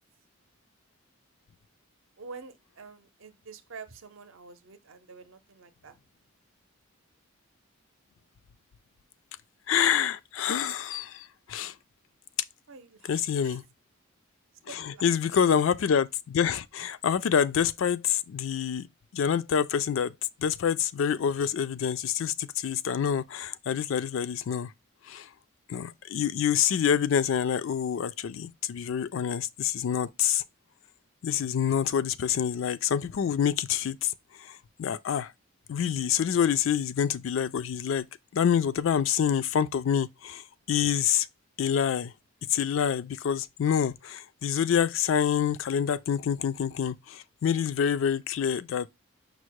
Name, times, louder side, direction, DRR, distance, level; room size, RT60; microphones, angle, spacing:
voice 1, 2.2-6.0 12.7-13.6 14.7-15.3, right 4 dB, 65° right, 0.6 m, -47 dB
voice 2, 9.7-11.7 13.1-13.6 14.7-18.9 19.1-20.1 20.4-24.7 25.1-25.3 25.7-30.4 31.2-34.1 34.4-34.5 34.8-35.3 35.7-38.1 38.3-40.4 40.7-41.3 41.6-42.1 42.5-48.9, left 8 dB, 65° left, 0.3 m, -27 dB
5.3 x 2.0 x 4.6 m
head